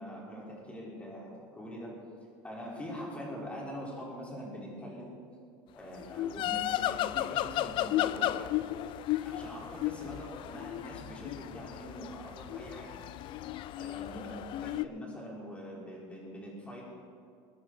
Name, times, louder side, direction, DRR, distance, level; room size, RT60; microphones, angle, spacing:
voice 1, 0.0-2.0 2.4-5.1 5.7-8.6 9.2-13.0 13.8-16.8, equal, 10° left, -4 dB, 3.7 m, -43 dB
sound 1, 6.0-14.8, left 13 dB, 45° left, 0.4 m, -34 dB
21.0 x 9.8 x 3.9 m, 2.5 s
cardioid pair, 145°, 12 cm